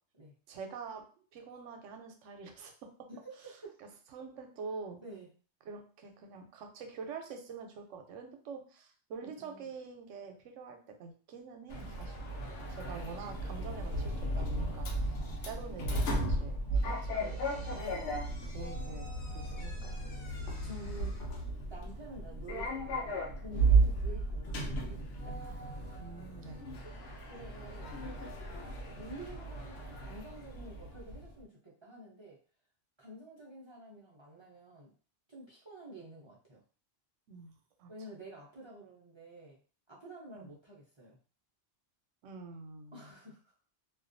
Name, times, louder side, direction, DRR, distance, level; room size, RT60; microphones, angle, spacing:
voice 1, 0.5-1.1 1.3-2.9 3.8-5.0 5.7-12.2 12.7-19.1 19.3-20.0 26.0-26.6 37.3-37.9 40.3-40.5 42.2-43.1, right 5 dB, 85° right, 4 dB, 0.9 m, -46 dB
voice 2, 3.1-3.8 5.0-5.3 9.4-9.7 15.2-15.7 16.1-16.4 20.6-21.2 21.7-25.4 27.2-28.0 28.9-32.4 33.0-34.9 35.3-36.6 37.9-39.6 39.9-41.2 42.9-43.5, right 1 dB, 40° right, -6 dB, 0.4 m, -50 dB
Sliding door, 11.7-31.3, right 2 dB, 90° left, 1.0 m, -34 dB
Slam / Squeak, 16.7-21.7, left 1 dB, 65° left, 0.9 m, -55 dB
2.3 x 2.3 x 2.5 m, 0.39 s
omnidirectional pair, 1.2 m